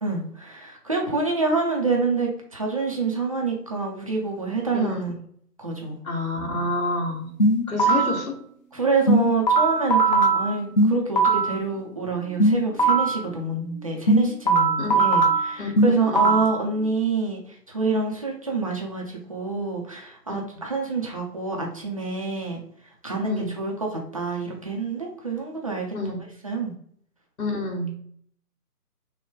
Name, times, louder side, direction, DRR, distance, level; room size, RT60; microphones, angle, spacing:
voice 1, 0.0-5.1 5.6-6.0 8.7-22.6 23.0-25.9 26.4-26.7, right 4 dB, 25° right, -1 dB, 0.6 m, -27 dB
voice 2, 4.7-5.1 6.0-7.3 7.7-8.4 14.8-15.0 15.6-15.7 16.0-16.4 23.2-23.5 25.9-26.2 27.4-27.9, left 2 dB, 60° left, 0 dB, 1.9 m, -28 dB
sound 1, 7.4-8.2 9.1-11.6 12.4-13.2 14.1-16.6, right 2 dB, 30° left, 0.7 m, -20 dB
6.2 x 2.2 x 3.7 m, 0.63 s
figure-of-eight pair, 145°, 47 cm